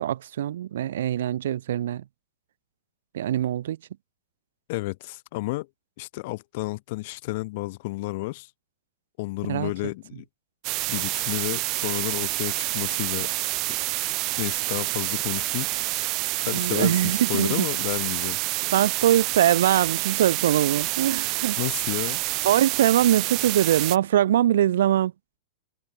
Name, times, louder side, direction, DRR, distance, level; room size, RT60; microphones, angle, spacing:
voice 1, 0.0-2.0 3.1-3.8 9.5-9.7 16.5-17.7 18.7-21.6 22.4-25.1, right 11 dB, 65° right, 0.9 m, -22 dB
voice 2, 4.7-5.7 6.0-8.5 9.2-10.2 10.9-13.3 13.7-13.8 14.4-16.1 16.4-18.4 21.6-22.2, left 22 dB, 55° left, 3.1 m, -31 dB
sound 1, 10.6-24.0, right 23 dB, 45° right, 1.3 m, -28 dB
hypercardioid pair, 100°, 0 cm